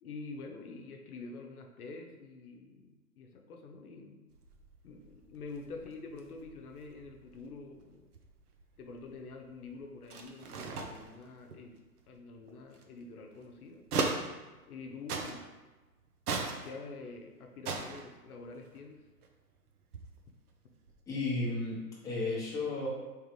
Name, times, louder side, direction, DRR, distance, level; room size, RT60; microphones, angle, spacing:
voice 1, 0.0-4.3 4.8-8.1 8.8-11.8 12.1-13.8 14.7-15.5 16.6-19.0, left 3 dB, 75° left, 3 dB, 0.7 m, -47 dB
sound 1, 4.3-14.8 15.1-15.7 16.1-17.2 17.5-19.4 19.7-21.0, right 4 dB, 80° right, 0.7 m, -40 dB
voice 2, 21.1-22.9, left 3 dB, 10° left, -6 dB, 0.7 m, -33 dB
3.6 x 3.2 x 3.1 m, 1.2 s
hypercardioid pair, 120°, 45 cm